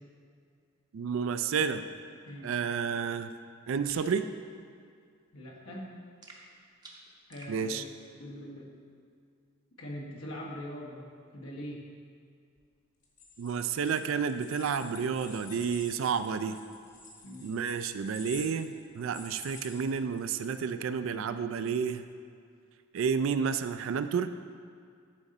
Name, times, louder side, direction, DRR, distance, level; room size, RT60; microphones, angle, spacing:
voice 1, 0.9-1.8 2.4-3.3 3.7-4.3 7.5-7.8 13.4-16.6 17.4-22.0 22.9-24.3, right 6 dB, 70° right, 11 dB, 0.3 m, -30 dB
sound 1, 3.9-4.1 6.2-7.6, right 3 dB, 20° right, 0.6 m, -51 dB
voice 2, 5.3-5.9 7.3-7.8 8.2-8.7 9.8-11.8 17.2-17.5, equal, 85° left, -3 dB, 1.3 m, -42 dB
sound 2, 13.0-20.5, left 4 dB, 35° left, 1.0 m, -49 dB
10.5 x 3.8 x 4.1 m, 2.3 s
head